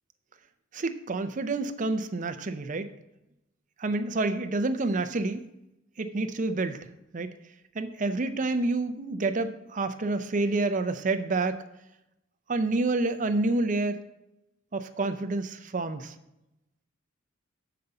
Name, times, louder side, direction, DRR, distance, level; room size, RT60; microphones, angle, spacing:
voice 1, 0.7-2.9 3.8-5.5 6.0-6.9 7.1-7.3 7.8-11.6 12.5-14.0 14.7-16.1, right 2 dB, 40° right, 10 dB, 0.5 m, -28 dB
6.7 x 5.1 x 6.9 m, 0.88 s
head